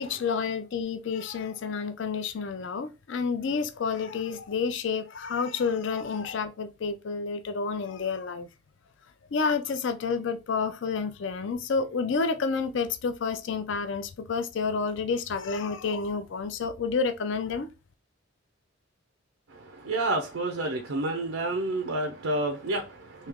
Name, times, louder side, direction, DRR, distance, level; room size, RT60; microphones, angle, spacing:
voice 1, 0.0-8.5 9.3-17.7, left 5 dB, 60° left, 0.4 m, -29 dB
voice 2, 19.5-23.3, right 2 dB, 85° right, 0.6 m, -29 dB
3.2 x 2.8 x 3.5 m
head